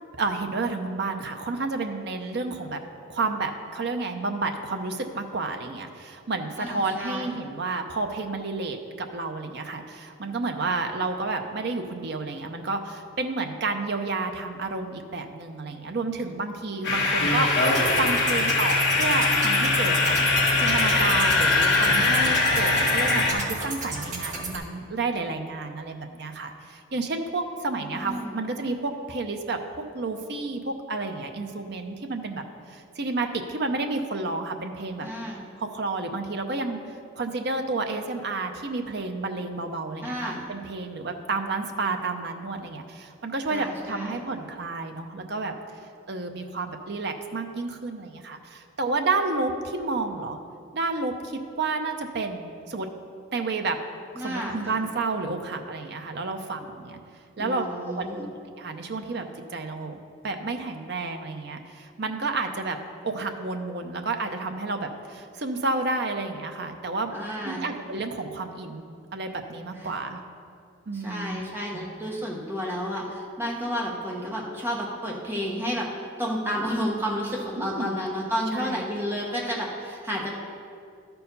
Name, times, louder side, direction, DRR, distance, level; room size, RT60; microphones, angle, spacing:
voice 1, 0.2-2.8 3.1-20.1 20.6-29.6 29.9-35.1 35.6-36.8 37.2-45.5 46.1-50.4 50.7-52.9 53.3-53.8 54.2-57.0 57.4-57.6 58.0-58.3 58.6-60.0 60.2-62.8 63.0-67.1 67.4-70.2 70.9-71.4 71.7-71.9 77.6-78.0 78.5-78.8, right 3 dB, 55° right, 5 dB, 0.6 m, -30 dB
voice 2, 6.6-7.3 27.8-28.4 35.0-35.5 40.0-40.4 43.5-44.2 54.2-54.8 57.4-58.3 67.1-67.7 69.8-69.9 70.9-75.9 76.2-80.3, equal, 10° right, -3 dB, 1.1 m, -31 dB
sound 1, 16.8-23.3, left 3 dB, 55° left, 1.4 m, -22 dB
sound 2, 17.6-24.6, right 3 dB, 35° right, 1.1 m, -34 dB
12.5 x 4.6 x 5.3 m, 2.4 s
head